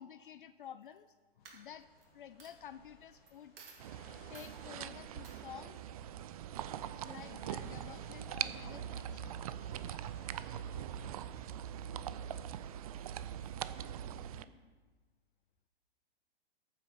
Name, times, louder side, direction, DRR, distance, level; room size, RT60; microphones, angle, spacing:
voice 1, 0.0-3.5 4.3-5.8 7.0-9.4, left 9 dB, 50° left, 13 dB, 0.5 m, -51 dB
Coin (dropping), 0.8-1.1 1.4-2.0 2.4-2.5 3.3-3.4 3.6-3.9 4.3-4.6 5.2-5.4, right 5 dB, 60° right, 2.8 m, -54 dB
sound 1, 1.4-11.1, left 2 dB, 30° left, 3.6 m, -62 dB
sound 2, 3.8-14.4, right 10 dB, 35° right, 0.5 m, -42 dB
voice 2, 10.6-14.6, right 2 dB, 15° right, -4 dB, 3.7 m, -63 dB
14.5 x 8.1 x 5.5 m, 1.4 s
figure-of-eight pair, 110°, 32 cm